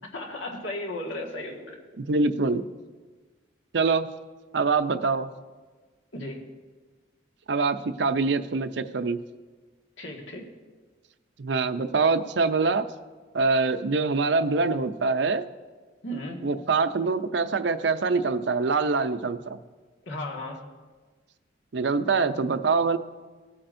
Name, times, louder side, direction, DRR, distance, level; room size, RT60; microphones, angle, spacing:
voice 1, 0.1-1.8 6.1-6.5 10.0-10.5 16.0-16.5 20.1-20.6, left 1 dB, 90° left, 0 dB, 1.7 m, -35 dB
voice 2, 2.0-2.6 3.7-4.1 4.5-5.3 7.5-9.2 11.4-12.9 13.3-15.4 16.4-19.6 21.7-23.0, right 4 dB, 65° right, 10 dB, 0.5 m, -24 dB
18.5 x 8.6 x 2.6 m, 1.4 s
head